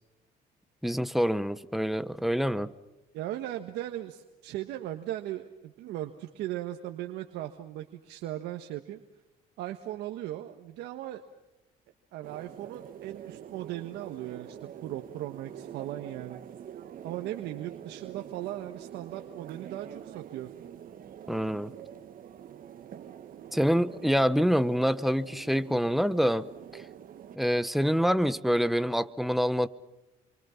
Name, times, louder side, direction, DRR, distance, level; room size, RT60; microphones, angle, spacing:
voice 1, 0.8-2.7 21.3-21.7 23.5-26.5 26.7-26.8 27.3-29.7, equal, ahead, 13 dB, 1.0 m, -26 dB
voice 2, 3.1-9.0 9.6-11.2 12.1-16.4 17.0-20.5, right 13 dB, 85° right, 5 dB, 1.5 m, -38 dB
sound 1, 12.2-27.4, right 9 dB, 55° right, 1.7 m, -46 dB
28.5 x 24.5 x 5.8 m, 0.99 s
cardioid pair, 110°, 17 cm